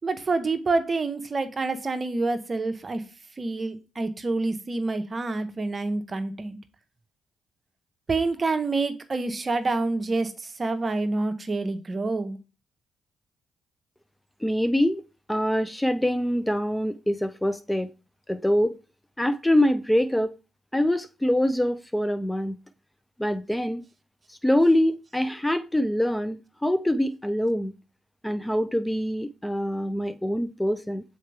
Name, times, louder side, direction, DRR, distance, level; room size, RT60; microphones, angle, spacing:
voice 1, 0.0-3.0 3.4-6.6 8.1-10.3 10.6-12.4, right 3 dB, 40° right, 0.9 m, -27 dB
voice 2, 14.4-15.0 15.3-17.9 18.3-18.7 19.2-20.3 20.7-22.6 23.2-23.8 24.3-27.7 28.2-31.0, left 1 dB, 10° left, 0.5 m, -24 dB
6.5 x 4.3 x 3.3 m
hypercardioid pair, 50°, 0 cm